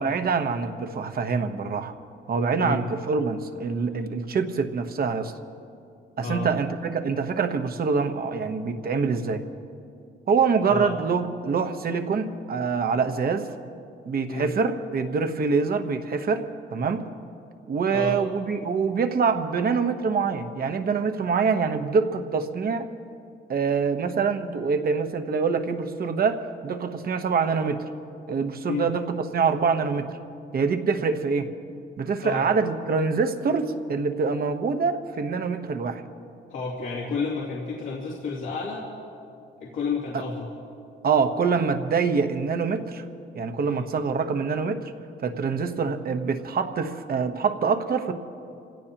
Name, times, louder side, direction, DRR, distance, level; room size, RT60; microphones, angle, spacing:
voice 1, 0.0-1.9 2.3-5.3 6.2-9.4 10.3-13.5 14.0-16.4 16.7-17.1 17.7-22.9 23.5-27.8 28.3-30.1 30.5-31.5 32.0-36.0 40.1-40.2 41.0-43.0 43.3-44.9 45.2-48.1, right 5 dB, 50° right, 7 dB, 1.2 m, -25 dB
voice 2, 36.5-38.9 39.6-40.5 43.6-43.9, left 4 dB, 85° left, -5 dB, 2.6 m, -31 dB
27.0 x 17.0 x 3.0 m, 2.5 s
cardioid pair, 90°, 20 cm